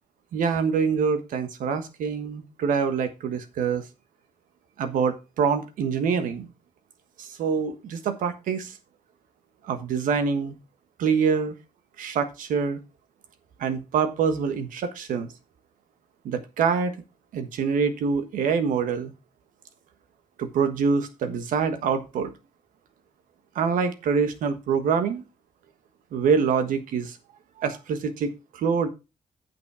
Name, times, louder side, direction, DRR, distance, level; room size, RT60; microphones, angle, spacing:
voice 1, 0.3-3.8 4.8-6.5 7.2-8.7 9.7-10.5 11.0-11.5 12.0-12.8 13.6-15.3 16.2-16.9 17.3-19.1 20.4-22.3 23.5-25.2 26.1-27.2 27.6-28.9, right 6 dB, 90° right, 1.3 m, -25 dB
9.3 x 6.0 x 4.8 m
cardioid pair, 80°, 13 cm